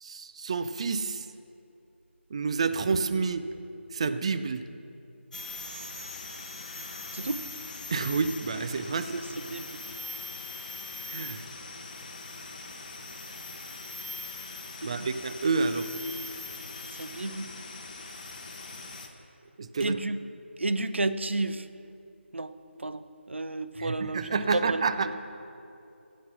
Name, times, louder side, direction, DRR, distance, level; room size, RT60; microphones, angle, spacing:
voice 1, 0.0-1.3 2.3-3.4 3.9-4.6 7.9-9.1 11.1-11.4 14.8-15.9 19.6-20.0 23.8-25.1, right 4 dB, 30° right, 10 dB, 0.5 m, -29 dB
sound 1, 5.3-19.1, left 3 dB, 35° left, 1.2 m, -41 dB
voice 2, 16.9-17.5 19.8-20.2 20.6-21.7 22.3-22.5 22.8-23.0 23.3-24.2 24.5-24.8, right 2 dB, 70° right, 11 dB, 0.7 m, -31 dB
16.0 x 7.3 x 6.0 m, 2.6 s
figure-of-eight pair, 160°, 7 cm